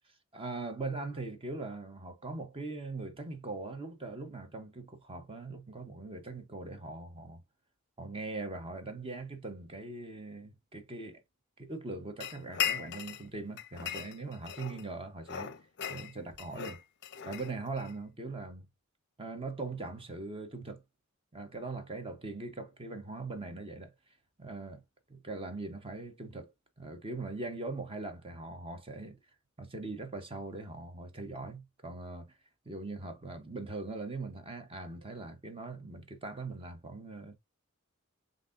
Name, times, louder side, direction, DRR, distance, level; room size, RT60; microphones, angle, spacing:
voice 1, 0.3-7.4 8.0-11.2 11.6-15.5 15.9-16.8 17.3-18.7 19.2-20.8 21.3-23.9 24.4-24.8 25.1-26.5 26.8-29.2 29.6-32.4 32.7-37.3, right 3 dB, 25° right, 0.8 m, -41 dB
sound 1, 12.2-13.3 13.6-14.9 15.2-17.9, left 9 dB, 50° left, 0.5 m, -37 dB
7.3 x 2.6 x 2.5 m
head